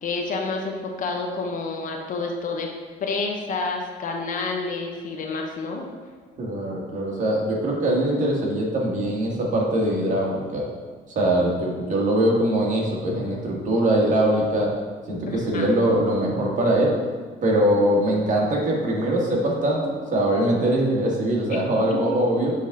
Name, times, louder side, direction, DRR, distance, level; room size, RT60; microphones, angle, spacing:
voice 1, 0.0-2.7 3.0-5.9 15.3-15.7 21.9-22.2, left 3 dB, 50° left, 2 dB, 0.8 m, -29 dB
voice 2, 6.4-10.6 11.1-14.7 15.1-16.9 17.4-22.5, right 1 dB, 45° right, -2 dB, 1.6 m, -22 dB
7.3 x 3.7 x 3.7 m, 1.5 s
cardioid pair, 110°, 17 cm